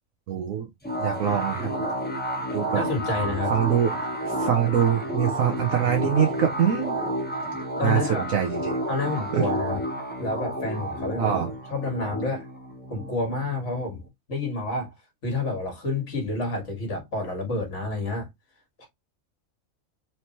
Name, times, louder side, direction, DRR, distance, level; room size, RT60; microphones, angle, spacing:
voice 1, 0.3-0.7 1.0-1.7 2.5-2.8 3.5-7.0 7.8-8.0 8.3-8.8 9.3-9.5 11.2-11.5, right 9 dB, 75° right, 1.1 m, -24 dB
sound 1, 0.8-14.1, equal, 10° left, 0.8 m, -30 dB
voice 2, 2.7-3.5 7.8-8.3 8.9-9.8 10.2-11.4 11.7-12.5 12.9-14.0 14.3-14.9 15.2-18.3 18.8-18.9, left 2 dB, 60° left, 2.0 m, -29 dB
4.4 x 3.2 x 2.8 m
omnidirectional pair, 1.4 m